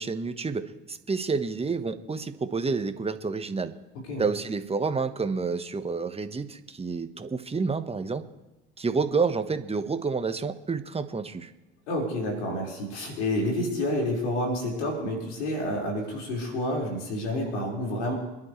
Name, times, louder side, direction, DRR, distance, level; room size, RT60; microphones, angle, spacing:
voice 1, 0.0-3.7 4.2-8.2 8.8-11.5, right 4 dB, 20° right, 9 dB, 1.3 m, -29 dB
voice 2, 11.9-18.1, left 1 dB, 80° left, -2 dB, 5.1 m, -29 dB
27.5 x 11.0 x 3.3 m, 0.98 s
hypercardioid pair, 70°, 33 cm